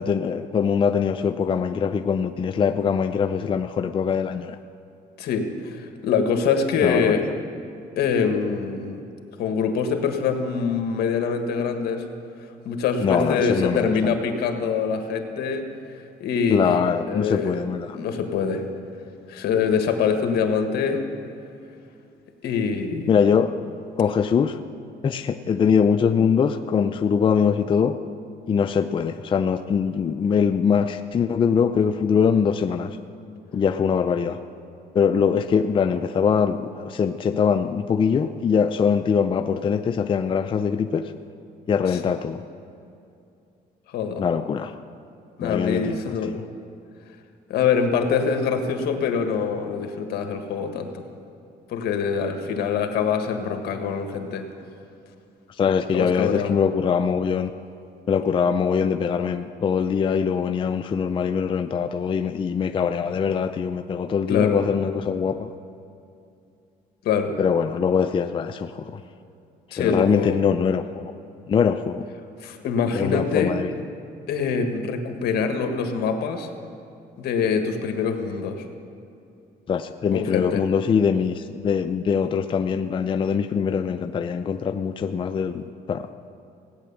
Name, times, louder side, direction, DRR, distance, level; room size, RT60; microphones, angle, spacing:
voice 1, 0.0-4.6 6.8-7.3 13.0-14.1 16.5-18.0 23.1-23.5 24.0-24.6 25.0-28.0 28.5-33.0 33.5-34.4 34.9-41.1 41.7-42.4 44.2-44.7 45.4-46.4 55.5-57.5 58.1-65.5 67.4-69.0 69.8-71.1 71.5-72.1 72.9-73.7 79.7-86.1, left 6 dB, 30° left, 8 dB, 0.5 m, -22 dB
voice 2, 5.2-7.2 8.0-9.0 9.4-12.0 12.6-15.6 16.2-17.6 17.9-18.6 19.3-21.0 22.4-23.1 41.9-42.0 43.9-44.2 45.4-46.3 47.5-51.0 51.7-54.4 55.9-56.5 64.3-64.6 67.0-67.3 69.7-70.4 72.4-73.5 74.3-76.5 77.2-78.6 80.1-80.6, left 6 dB, 70° left, 5 dB, 1.6 m, -24 dB
17.0 x 9.5 x 7.0 m, 2.6 s
cardioid pair, 110°, 17 cm